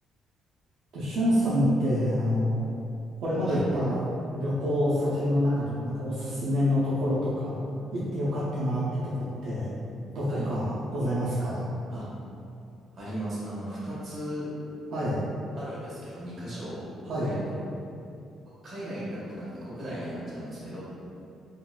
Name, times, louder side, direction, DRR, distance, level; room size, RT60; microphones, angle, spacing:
voice 1, 0.9-2.7 3.2-7.5 7.9-9.7 10.1-10.7 10.9-11.6 14.9-15.2 17.0-17.3, equal, 65° right, -9 dB, 0.5 m, -27 dB
voice 2, 12.9-14.5 15.5-16.8 17.2-17.4 18.6-20.8, equal, 30° right, -10 dB, 1.1 m, -36 dB
3.7 x 2.3 x 2.2 m, 2.6 s
cardioid pair, 165°, 0 cm